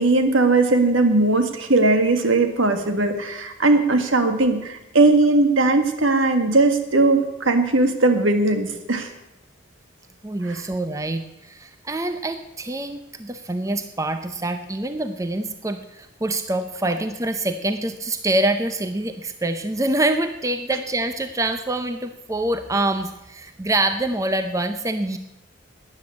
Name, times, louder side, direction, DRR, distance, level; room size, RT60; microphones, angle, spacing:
voice 1, 0.0-9.1 10.5-10.6, right 2 dB, 75° right, 7 dB, 1.8 m, -19 dB
voice 2, 10.2-25.2, right 2 dB, 15° right, 9 dB, 0.6 m, -25 dB
13.0 x 9.8 x 8.5 m, 0.91 s
head